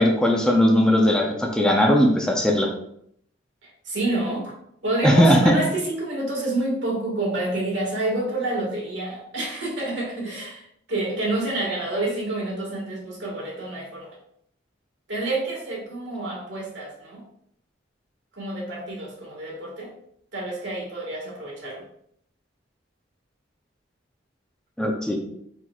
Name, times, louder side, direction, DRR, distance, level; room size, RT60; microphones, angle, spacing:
voice 1, 0.0-2.7 5.0-5.4 24.8-25.2, equal, 5° left, 0 dB, 0.5 m, -18 dB
voice 2, 3.9-4.5 4.8-14.1 15.1-17.2 18.4-19.9 20.3-21.8, right 2 dB, 70° right, -3 dB, 1.7 m, -28 dB
4.4 x 4.3 x 2.4 m, 0.70 s
head